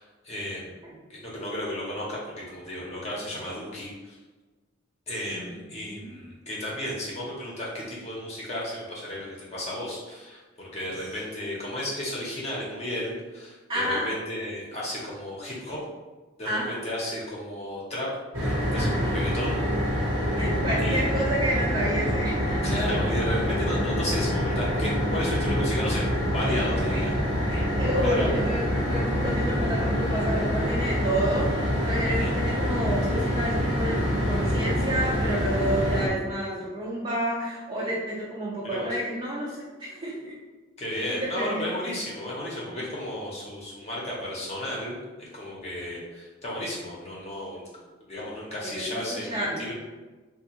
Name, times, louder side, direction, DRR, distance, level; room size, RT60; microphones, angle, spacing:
voice 1, 0.0-0.8 1.1-4.2 5.1-15.8 16.4-18.1 18.4-19.6 20.8-21.1 22.6-26.0 26.3-27.1 28.0-28.3 32.2-32.4 38.6-38.9 40.8-47.6 48.1-49.7, left 1 dB, 35° left, -5 dB, 0.7 m, -33 dB
voice 2, 5.2-6.2 13.7-14.1 16.4-16.8 18.7-19.1 20.4-22.6 26.7-27.0 27.5-40.4 40.9-41.7 48.6-49.7, right 1 dB, 25° right, -7 dB, 0.5 m, -30 dB
sound 1, 18.3-36.1, equal, 70° right, 1.0 m, -26 dB
3.4 x 2.3 x 2.9 m, 1.2 s
head